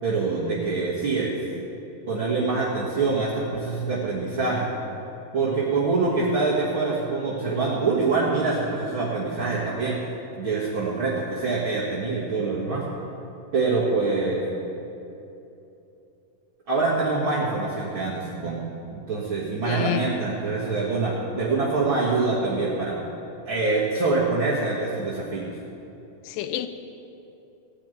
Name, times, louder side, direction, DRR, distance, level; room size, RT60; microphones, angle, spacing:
voice 1, 0.0-1.4 2.1-4.7 5.3-10.0 10.4-12.9 13.5-14.5 16.7-23.0 23.5-25.5, right 3 dB, 45° right, -8 dB, 2.0 m, -25 dB
voice 2, 19.6-20.1 26.2-26.7, left 11 dB, 85° left, 10 dB, 2.4 m, -28 dB
17.0 x 5.9 x 9.1 m, 2.9 s
omnidirectional pair, 3.9 m